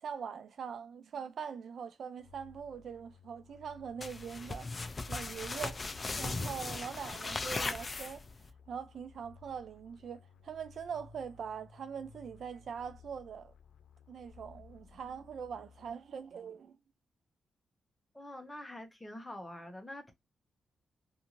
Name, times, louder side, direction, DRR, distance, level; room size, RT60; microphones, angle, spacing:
voice 1, 0.0-4.7 5.1-5.8 6.2-8.2 8.7-13.5 14.1-16.8, right 7 dB, 60° right, 0.3 m, -42 dB
sound 1, 2.2-16.3, left 4 dB, 85° left, 0.6 m, -58 dB
sound 2, 4.0-8.5, left 3 dB, 25° left, 0.3 m, -38 dB
voice 2, 18.1-20.1, left 1 dB, 10° left, 0.7 m, -45 dB
2.6 x 2.5 x 2.8 m
wide cardioid pair, 140°, 0 cm